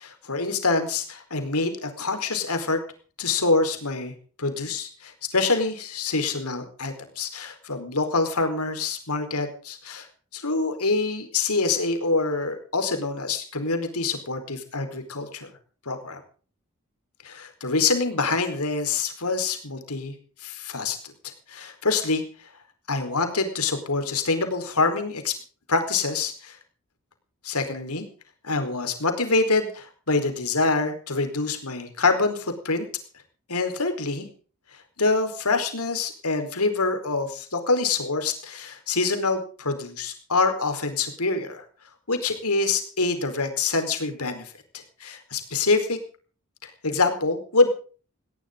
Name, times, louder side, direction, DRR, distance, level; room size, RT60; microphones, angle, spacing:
voice 1, 0.0-2.8 3.2-4.1 4.4-10.1 10.3-15.5 15.9-16.2 17.2-20.1 20.4-21.1 21.5-22.2 22.9-25.3 25.7-26.6 27.4-28.0 28.4-32.9 33.5-34.3 35.0-41.6 42.1-44.5 45.0-46.0 46.6-47.7, left 3 dB, 85° left, 6 dB, 4.5 m, -25 dB
19.0 x 18.0 x 3.9 m, 0.40 s
head